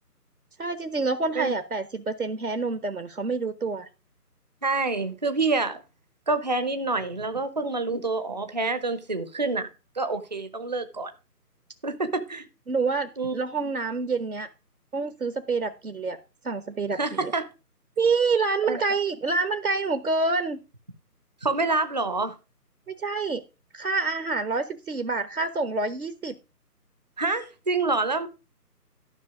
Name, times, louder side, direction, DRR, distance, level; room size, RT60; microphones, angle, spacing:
voice 1, 0.6-3.9 12.7-14.5 14.9-16.2 16.4-17.3 18.0-20.6 22.9-23.4 23.7-26.4, right 4 dB, 60° right, 1.3 m, -27 dB
voice 2, 4.6-5.8 6.3-9.7 10.0-11.1 11.8-12.5 13.2-13.3 13.6-13.7 17.0-17.5 18.7-18.8 21.4-22.3 27.2-28.3, right 3 dB, 25° right, 0.8 m, -27 dB
13.0 x 6.2 x 4.9 m
figure-of-eight pair, 155°, 48 cm